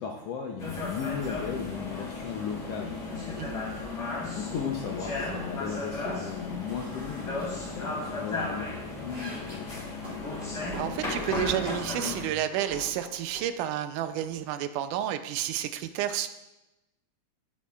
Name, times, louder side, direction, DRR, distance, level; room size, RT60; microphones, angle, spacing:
voice 1, 0.0-10.0, left 6 dB, 80° left, 1 dB, 1.4 m, -37 dB
sound 1, 0.6-12.2, left 3 dB, 30° left, 2.4 m, -35 dB
sound 2, 4.6-4.7 5.0-5.3 5.6-6.2 6.6-8.2 8.6-11.6 12.0-13.5, right 1 dB, 20° right, 2.2 m, -45 dB
voice 2, 10.8-16.3, right 11 dB, 80° right, 10 dB, 2.0 m, -30 dB
15.5 x 7.2 x 2.3 m, 0.99 s
omnidirectional pair, 3.7 m